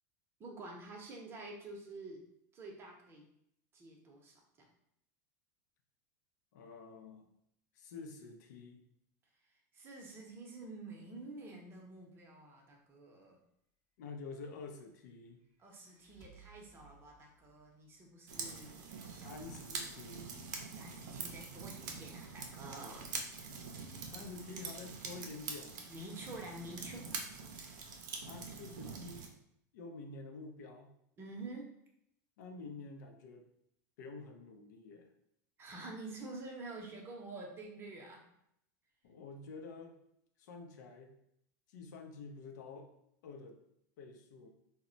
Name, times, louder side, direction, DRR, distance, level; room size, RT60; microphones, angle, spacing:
voice 1, 0.4-2.2 2.5-3.2 3.7-4.7 9.5-13.4 15.6-19.3 20.7-23.1 25.8-27.1 31.2-31.7 35.6-38.2, right 2 dB, 25° right, 0 dB, 0.6 m, -48 dB
voice 2, 6.5-7.2 7.7-8.8 14.0-15.4 19.2-20.4 24.0-25.8 28.3-29.3 29.7-30.9 32.4-33.5 34.0-35.1 39.0-40.0 40.4-41.1 41.7-42.9 43.2-43.6 44.0-44.5, left 3 dB, 75° left, 4 dB, 0.5 m, -49 dB
sound 1, 15.6-18.9, right 4 dB, 35° left, 0.6 m, -63 dB
sound 2, 18.3-29.3, right 5 dB, 80° right, 0.5 m, -45 dB
2.1 x 2.1 x 3.8 m, 0.75 s
supercardioid pair, 125°, 10 cm